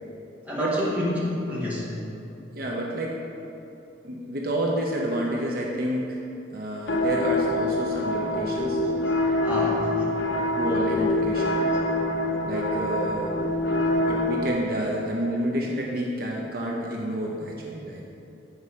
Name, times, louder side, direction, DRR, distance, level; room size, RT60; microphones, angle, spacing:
voice 1, 0.4-1.9 9.4-10.2, equal, 10° right, -7 dB, 1.5 m, -28 dB
voice 2, 2.5-3.2 4.0-6.2 6.5-8.8 10.5-11.6 12.4-13.3 14.0-18.0, right 1 dB, 55° right, -2 dB, 0.8 m, -29 dB
sound 1, 6.9-14.5, left 1 dB, 75° left, 0.7 m, -25 dB
8.2 x 4.7 x 5.5 m, 2.8 s
head